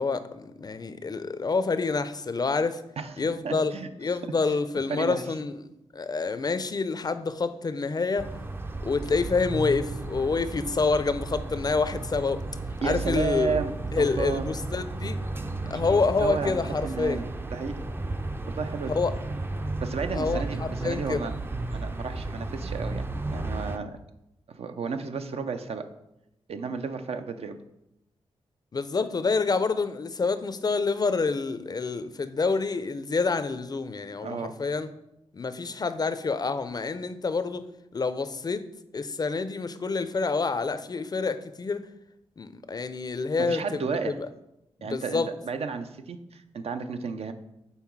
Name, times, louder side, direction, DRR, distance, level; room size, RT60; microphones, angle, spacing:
voice 1, 0.0-2.8 3.2-3.7 4.0-5.5 5.9-8.3 8.8-12.4 12.8-13.6 13.9-15.2 15.7-17.2 18.9-19.1 20.1-21.3 28.7-34.9 35.3-37.7 37.9-38.6 38.9-41.9 42.4-44.3 44.8-45.3, left 4 dB, 35° left, 0.5 m, -27 dB
voice 2, 3.0-3.9 4.5-4.6 4.9-5.2 12.8-14.5 15.9-17.2 17.5-17.8 18.5-18.9 19.8-21.3 21.7-24.0 24.5-25.8 26.5-27.6 34.2-34.5 43.4-44.2 44.8-47.3, right 5 dB, 65° right, 0.6 m, -32 dB
sound 1, 8.2-23.8, right 2 dB, 20° right, 0.5 m, -33 dB
5.7 x 4.0 x 4.6 m
cardioid pair, 75°, 11 cm